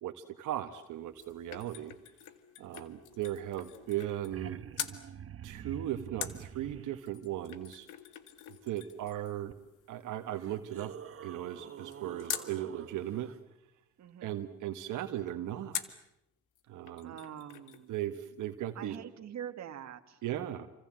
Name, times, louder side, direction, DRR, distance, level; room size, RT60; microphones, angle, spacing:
voice 1, 0.0-1.9 2.6-4.6 5.4-7.9 8.6-9.6 9.9-10.9 11.2-13.3 14.2-15.8 16.7-17.2 17.9-19.0 20.2-20.7, right 12 dB, 85° right, 6 dB, 1.6 m, -37 dB
sound 1, 0.8-4.5 4.7-5.0 6.2-12.5 15.7-16.1 16.6-16.7 16.9-17.9 18.1-18.2, left 11 dB, 85° left, 1.9 m, -44 dB
sound 2, 3.6-3.7 3.9-7.0 9.5-9.6 10.3-13.4 15.9-16.0, right 9 dB, 45° right, 1.2 m, -47 dB
voice 2, 14.0-14.4 17.0-18.0 18.8-20.2, right 9 dB, 65° right, 8 dB, 1.9 m, -44 dB
28.5 x 26.0 x 7.7 m, 0.83 s
cardioid pair, 90°, 30 cm